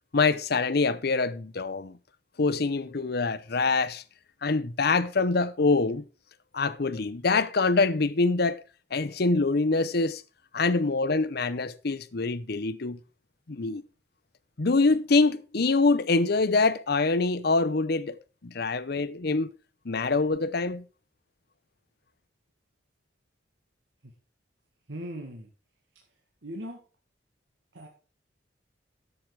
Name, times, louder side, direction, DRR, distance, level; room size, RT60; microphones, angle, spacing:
voice 1, 0.1-2.0 2.4-4.0 4.4-6.0 6.5-8.6 8.9-10.2 10.5-13.0 13.5-13.8 14.6-18.2 18.4-19.5 19.8-20.8, left 3 dB, 60° left, 0.8 m, -25 dB
voice 2, 24.9-25.5 25.9-26.8 27.7-27.9, equal, 90° right, 1.9 m, -40 dB
12.0 x 7.8 x 4.8 m
head